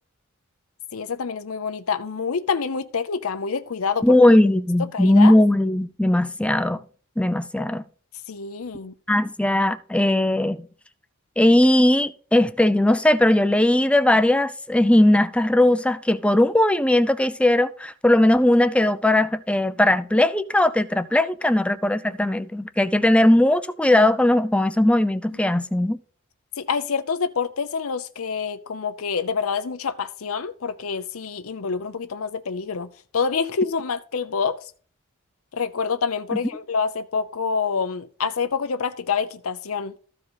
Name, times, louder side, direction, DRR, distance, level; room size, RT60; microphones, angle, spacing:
voice 1, 0.9-4.2 4.9-5.3 8.3-8.9 26.6-34.6 35.5-39.9, left 5 dB, 75° left, 0.6 m, -27 dB
voice 2, 4.0-6.8 7.2-7.8 9.1-10.6 11.4-26.0, left 1 dB, 5° left, 0.4 m, -18 dB
13.5 x 4.9 x 4.0 m
head